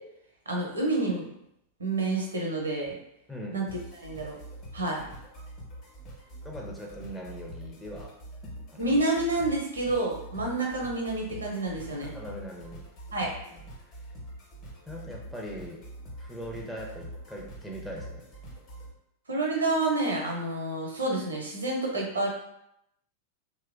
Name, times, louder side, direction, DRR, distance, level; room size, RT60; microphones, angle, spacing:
voice 1, 0.5-1.3 1.8-3.0 3.5-3.7 4.0-4.4 4.7-5.0 8.8-12.1 13.1-13.3 19.3-22.3, right 2 dB, 75° right, -1 dB, 0.6 m, -28 dB
voice 2, 3.3-3.7 6.4-8.1 8.4-8.9 11.9-12.8 13.5-14.0 14.9-15.8 16.2-18.3, equal, 5° left, -2 dB, 0.5 m, -41 dB
sound 1, 3.7-18.9, right 1 dB, 35° left, 0.9 m, -45 dB
2.9 x 2.1 x 2.4 m, 0.79 s
figure-of-eight pair, 90°, 0 cm